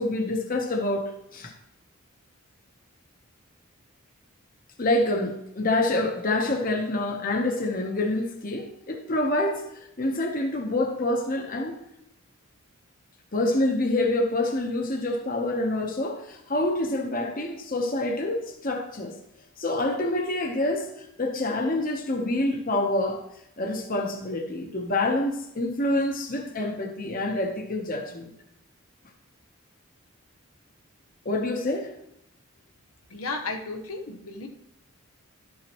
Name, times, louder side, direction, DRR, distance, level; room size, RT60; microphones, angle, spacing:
voice 1, 0.0-1.5 4.8-11.8 13.3-19.2 19.6-23.2 23.6-28.3 31.2-31.9, left 2 dB, 40° left, 1.0 m, -27 dB
voice 2, 33.1-34.5, left 3 dB, 90° left, 1.0 m, -34 dB
12.0 x 7.3 x 3.0 m
head